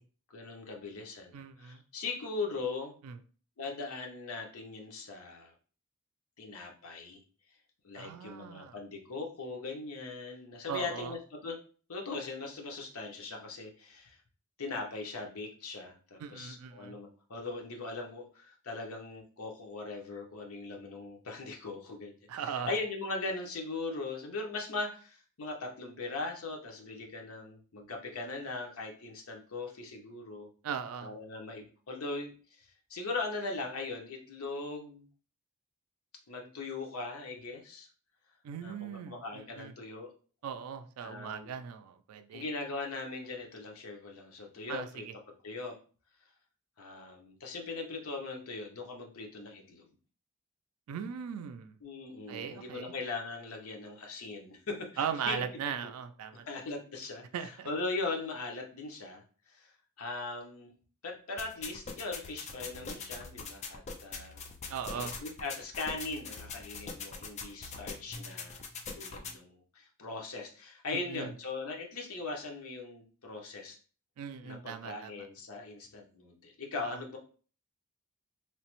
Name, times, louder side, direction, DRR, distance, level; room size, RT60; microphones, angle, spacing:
voice 1, 0.3-2.9 3.6-5.5 6.4-7.2 7.8-11.6 11.9-14.2 14.6-30.5 31.0-35.1 36.3-37.9 38.6-40.1 41.0-41.6 42.3-45.0 45.4-45.8 46.8-49.8 51.8-55.4 55.8-55.9 56.3-59.2 59.5-59.7 60.0-60.7 61.0-64.4 64.9-68.6 68.9-73.8 74.4-77.2, left 3 dB, 70° left, 1 dB, 0.7 m, -40 dB
voice 2, 1.3-1.8 3.0-3.1 8.0-8.7 10.7-11.1 16.2-16.9 22.3-22.7 30.6-31.1 38.4-39.7 40.4-42.4 44.7-45.1 50.9-51.7 52.3-52.9 55.0-56.4 57.3-57.7 64.7-65.1 70.9-71.3 74.2-75.3 76.8-77.0, right 7 dB, 80° right, 9 dB, 0.3 m, -39 dB
sound 1, 61.4-69.4, left 4 dB, 30° left, 0.3 m, -43 dB
3.1 x 2.0 x 2.9 m, 0.40 s
head